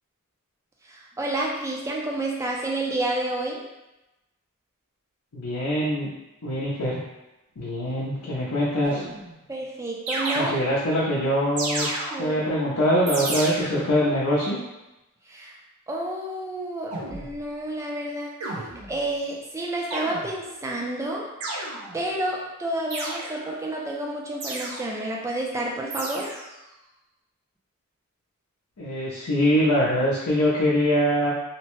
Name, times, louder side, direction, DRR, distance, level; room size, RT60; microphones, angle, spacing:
voice 1, 0.8-3.6 9.5-10.5 12.1-12.4 15.3-15.6 15.9-18.3 18.9-21.3 21.9-26.3, right 1 dB, 15° right, -2 dB, 0.3 m, -30 dB
voice 2, 5.3-6.1 6.4-7.0 7.6-9.0 10.4-11.9 12.2-14.6 28.8-31.3, equal, 90° left, -7 dB, 0.6 m, -23 dB
sound 1, 8.8-9.5 10.1-11.0 11.6-12.5 13.1-14.0 16.9-17.4 18.4-19.1 19.9-20.6 21.4-22.2 22.9-23.6 24.4-25.1 25.9-26.6, right 2 dB, 70° right, 0.5 m, -33 dB
2.8 x 2.1 x 3.0 m, 0.98 s
head